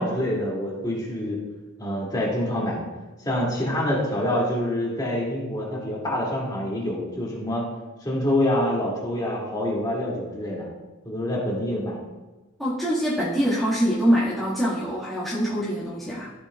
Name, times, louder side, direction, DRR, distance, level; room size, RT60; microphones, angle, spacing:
voice 1, 0.0-1.4 1.8-2.9 3.2-7.6 8.0-10.7 11.0-12.0, left 1 dB, 20° left, -4 dB, 2.4 m, -26 dB
voice 2, 12.6-16.3, equal, ahead, -11 dB, 1.8 m, -24 dB
14.5 x 6.7 x 2.4 m, 1.1 s
head